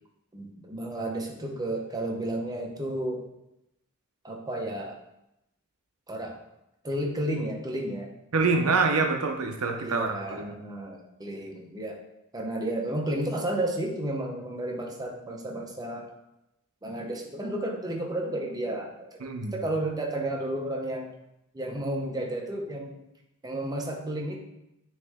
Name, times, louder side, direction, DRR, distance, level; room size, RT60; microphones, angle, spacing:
voice 1, 0.3-3.2 4.2-5.0 6.1-6.4 6.8-8.1 9.8-12.0 12.3-16.1 16.8-18.9 19.5-21.1 21.5-23.0 23.4-24.5, right 1 dB, 15° right, 1 dB, 0.8 m, -32 dB
voice 2, 8.3-10.5 19.2-19.6, right 4 dB, 75° right, 3 dB, 0.8 m, -26 dB
9.6 x 3.2 x 3.6 m, 0.88 s
head